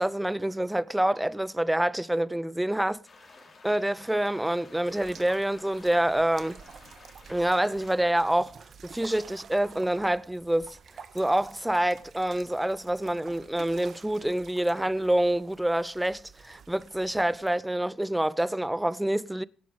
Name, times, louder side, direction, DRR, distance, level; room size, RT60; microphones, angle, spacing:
voice 1, 0.0-3.0 3.6-6.6 7.3-10.8 11.1-19.4, right 1 dB, 5° right, 0.7 m, -27 dB
sound 1, 3.0-8.0, left 3 dB, 40° left, 4.2 m, -53 dB
sound 2, 4.8-17.6, right 6 dB, 55° right, 1.7 m, -50 dB
17.5 x 9.2 x 5.2 m
cardioid pair, 90°, 0 cm